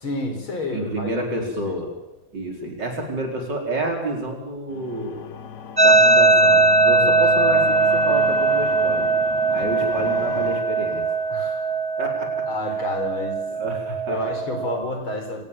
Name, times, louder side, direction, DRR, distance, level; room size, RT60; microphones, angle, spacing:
voice 1, 0.0-1.1 1.6-1.7 11.3-11.7 12.5-13.4 14.1-15.4, left 1 dB, 75° left, 5 dB, 5.4 m, -29 dB
voice 2, 0.7-1.9 2.3-5.2 5.8-9.1 9.5-11.0 12.0-12.5 13.5-14.2, right 2 dB, 55° right, 2 dB, 5.2 m, -29 dB
sound 1, 4.7-11.7, left 8 dB, 60° left, 1.6 m, -35 dB
sound 2, 5.8-14.8, right 3 dB, 10° right, 1.3 m, -20 dB
26.0 x 18.5 x 7.4 m, 1.0 s
omnidirectional pair, 2.3 m